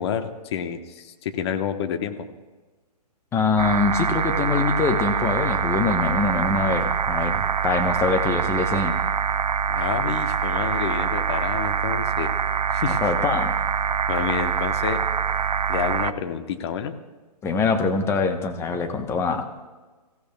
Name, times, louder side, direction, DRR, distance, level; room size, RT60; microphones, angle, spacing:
voice 1, 0.0-2.3 9.7-12.3 12.7-13.0 14.1-15.0 15.7-16.9, left 8 dB, 40° left, 7 dB, 1.1 m, -29 dB
voice 2, 3.3-8.9 12.9-13.6 17.4-19.5, left 4 dB, 10° left, 5 dB, 1.0 m, -24 dB
sound 1, 3.6-16.1, right 7 dB, 70° right, 0.6 m, -24 dB
25.5 x 15.5 x 2.3 m, 1.3 s
figure-of-eight pair, 130°, 21 cm